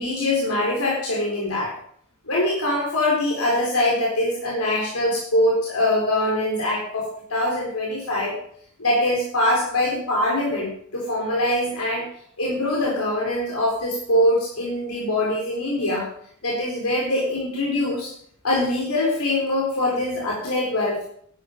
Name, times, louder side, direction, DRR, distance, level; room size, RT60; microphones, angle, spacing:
voice 1, 0.0-1.7 2.3-8.3 8.8-12.0 12.4-16.1 16.4-18.1 18.4-21.1, left 1 dB, 75° left, -3 dB, 4.1 m, -23 dB
12.0 x 11.5 x 5.2 m, 0.64 s
head